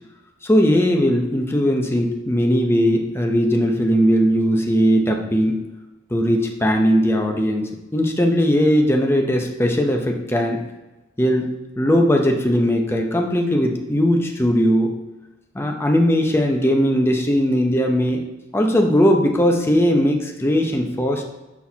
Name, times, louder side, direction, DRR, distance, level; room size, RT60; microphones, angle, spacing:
voice 1, 0.4-5.6 6.1-10.6 11.2-14.9 15.5-18.3 18.5-21.2, equal, 15° left, 2 dB, 0.7 m, -19 dB
6.2 x 6.0 x 2.8 m, 1.0 s
head